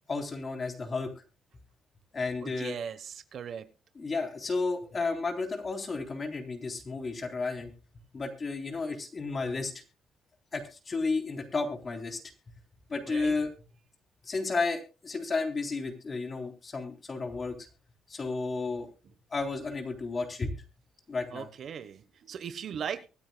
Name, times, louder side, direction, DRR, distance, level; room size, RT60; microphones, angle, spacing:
voice 1, 0.1-1.1 2.1-2.8 4.0-7.7 8.1-9.7 10.5-12.2 12.9-13.5 14.3-17.6 18.1-18.9 19.3-20.5 21.1-21.5, left 3 dB, 35° left, 3.6 m, -32 dB
voice 2, 2.4-3.7 13.1-13.3 21.3-23.1, right 7 dB, 60° right, 1.2 m, -38 dB
23.5 x 9.5 x 2.3 m
cardioid pair, 90°, 0 cm